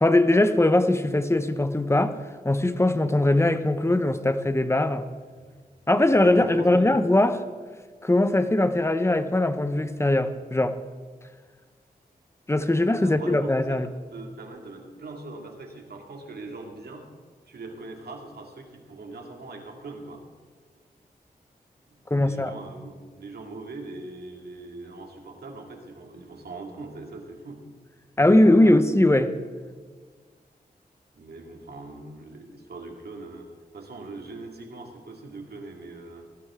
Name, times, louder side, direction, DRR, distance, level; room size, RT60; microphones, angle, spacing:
voice 1, 0.0-2.2 2.4-5.0 5.9-7.4 8.0-10.8 12.5-13.9 22.1-22.5 28.2-29.3, left 1 dB, 15° left, 11 dB, 0.9 m, -21 dB
voice 2, 6.2-6.9 12.9-13.8 14.1-17.1 17.5-20.2 21.9-27.6 28.1-28.7 31.1-33.5 33.7-36.2, right 3 dB, 80° right, 2 dB, 2.2 m, -41 dB
18.0 x 13.5 x 3.7 m, 1.5 s
wide cardioid pair, 70°, 16 cm